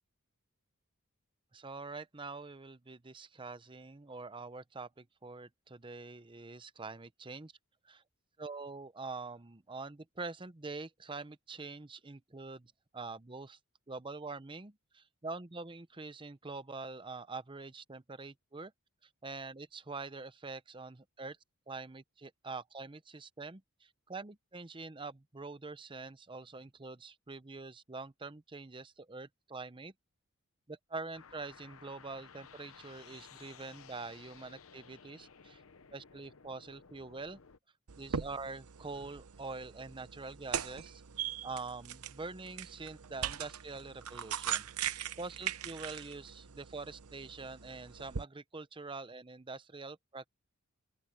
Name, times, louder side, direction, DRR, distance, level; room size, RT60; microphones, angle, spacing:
voice 1, 1.5-7.5 7.8-8.0 8.4-13.6 13.9-18.7 19.2-21.4 21.7-29.9 30.7-35.6 35.9-37.4 38.0-50.3, right 3 dB, 20° right, 0.7 m, -45 dB
sound 1, 31.1-37.6, left 6 dB, 65° left, 0.9 m, -56 dB
sound 2, 37.9-48.2, right 8 dB, 80° right, 0.8 m, -41 dB
open air
head